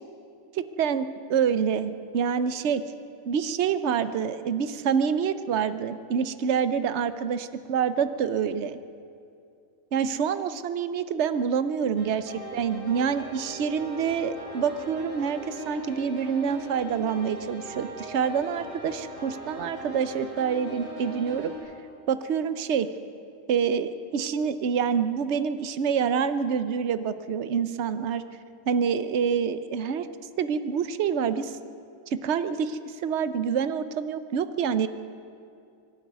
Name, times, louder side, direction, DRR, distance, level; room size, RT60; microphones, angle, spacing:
voice 1, 0.5-2.8 3.3-8.8 9.9-21.5 22.1-22.9 23.5-28.2 28.7-30.1 30.4-31.6 32.1-34.9, right 7 dB, 60° right, 12 dB, 1.1 m, -27 dB
sound 1, 12.0-21.6, equal, 15° right, 7.6 m, -40 dB
24.0 x 12.5 x 9.4 m, 2.5 s
omnidirectional pair, 1.4 m